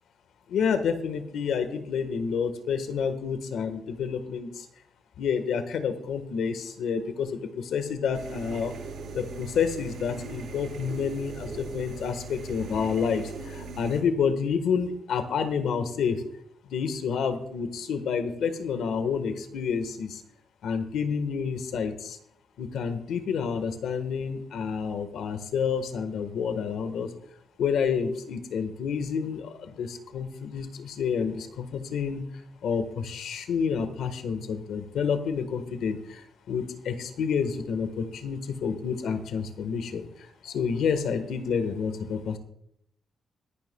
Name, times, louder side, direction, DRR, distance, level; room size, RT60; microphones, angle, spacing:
voice 1, 0.5-4.5 5.2-8.7 9.1-13.2 13.5-16.2 16.7-20.2 20.6-22.2 22.6-27.1 27.6-32.2 32.6-36.0 36.5-40.0 40.4-42.4, left 6 dB, 85° left, 9 dB, 1.4 m, -29 dB
sound 1, 8.1-14.0, right 4 dB, 75° right, 5.6 m, -40 dB
22.0 x 11.5 x 2.3 m, 0.72 s
wide cardioid pair, 165°, 0 cm